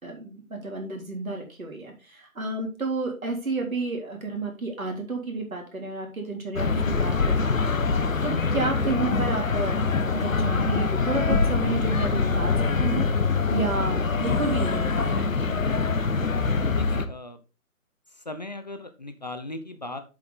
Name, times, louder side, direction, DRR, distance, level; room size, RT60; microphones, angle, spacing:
voice 1, 0.0-7.5 8.2-9.8 10.1-15.3, right 3 dB, 70° right, 1 dB, 3.6 m, -31 dB
sound 1, 6.5-17.0, left 4 dB, 65° left, 1.2 m, -24 dB
voice 2, 16.8-17.4 18.2-20.0, left 2 dB, 30° left, 9 dB, 0.7 m, -37 dB
7.9 x 7.0 x 3.9 m, 0.32 s
figure-of-eight pair, 150°, 43 cm